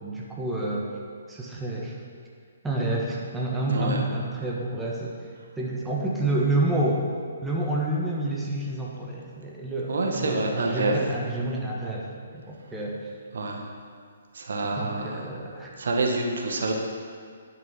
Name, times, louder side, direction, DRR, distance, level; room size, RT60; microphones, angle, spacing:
voice 1, 0.0-0.9 1.3-1.9 2.6-5.1 5.6-7.1 7.4-13.0 14.6-15.7, right 2 dB, 10° right, -4 dB, 1.5 m, -29 dB
voice 2, 3.7-4.0 9.9-11.0 13.3-13.6 14.3-15.2 15.8-16.7, right 2 dB, 65° right, 1 dB, 1.4 m, -27 dB
10.5 x 6.3 x 5.8 m, 2.1 s
figure-of-eight pair, 130°, 0 cm